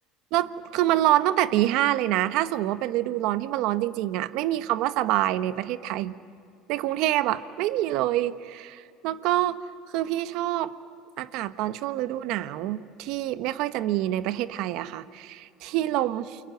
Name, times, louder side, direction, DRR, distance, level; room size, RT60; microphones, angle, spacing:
voice 1, 0.3-6.2 6.7-9.6 9.9-10.7 11.2-16.4, right 14 dB, 70° right, 12 dB, 1.0 m, -26 dB
29.0 x 23.0 x 7.8 m, 2.3 s
supercardioid pair, 90°, 0 cm